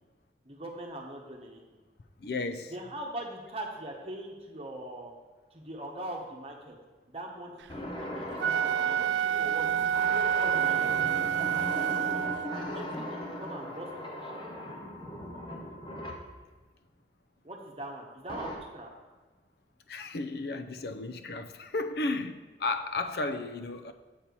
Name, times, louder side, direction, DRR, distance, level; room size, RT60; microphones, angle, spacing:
voice 1, 0.4-1.6 2.7-5.1 5.5-6.7 7.1-9.0 9.3-9.7 10.1-14.4 17.4-18.9, right 1 dB, 35° right, 0 dB, 1.2 m, -42 dB
voice 2, 2.2-2.7 19.9-23.9, left 3 dB, 60° left, 8 dB, 0.5 m, -34 dB
sound 1, 7.7-16.3 18.3-18.6, left 1 dB, 25° left, 0.9 m, -38 dB
Wind instrument woodwind instrument, 8.3-12.7, right 9 dB, 80° right, 0.3 m, -28 dB
7.3 x 4.4 x 6.8 m, 1.3 s
head